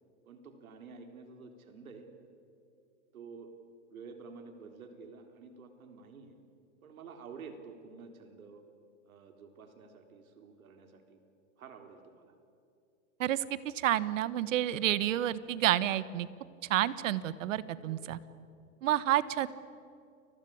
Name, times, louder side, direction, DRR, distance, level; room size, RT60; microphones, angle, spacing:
voice 1, 0.3-2.1 3.1-3.5 3.9-6.4 6.8-8.6 9.0-11.2 11.6-12.4 17.8-18.1, right 5 dB, 90° right, 6 dB, 3.6 m, -50 dB
voice 2, 13.2-16.3 16.7-18.2 18.8-19.5, right 13 dB, 65° right, 17 dB, 1.4 m, -29 dB
29.5 x 22.0 x 8.7 m, 2.5 s
supercardioid pair, 150°, 41 cm